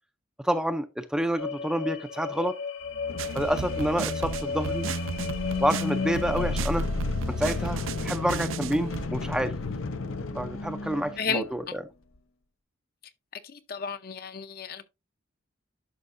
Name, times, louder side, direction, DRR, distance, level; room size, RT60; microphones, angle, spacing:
voice 1, 0.4-2.5 3.3-4.9 5.6-6.9 7.3-9.5 10.3-11.8, equal, 5° right, 0.4 m, -28 dB
sound 1, 1.4-6.6, left 5 dB, 60° left, 1.5 m, -35 dB
sound 2, 2.8-11.6, left 3 dB, 80° left, 0.7 m, -32 dB
sound 3, 3.2-9.1, right 7 dB, 75° right, 0.4 m, -36 dB
voice 2, 11.2-11.8 13.4-14.8, left 5 dB, 45° left, 0.7 m, -33 dB
11.0 x 5.6 x 2.5 m
head